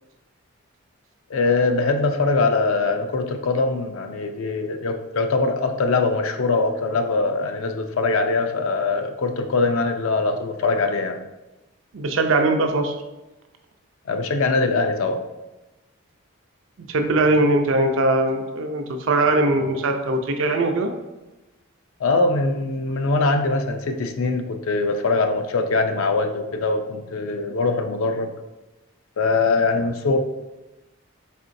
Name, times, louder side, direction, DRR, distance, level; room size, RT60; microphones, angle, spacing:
voice 1, 1.3-11.2 14.1-15.2 22.0-28.3 29.2-30.2, left 3 dB, 75° left, 6 dB, 0.4 m, -22 dB
voice 2, 11.9-12.9 16.9-20.9, right 2 dB, 65° right, 5 dB, 0.5 m, -20 dB
4.2 x 3.7 x 2.6 m, 1.0 s
head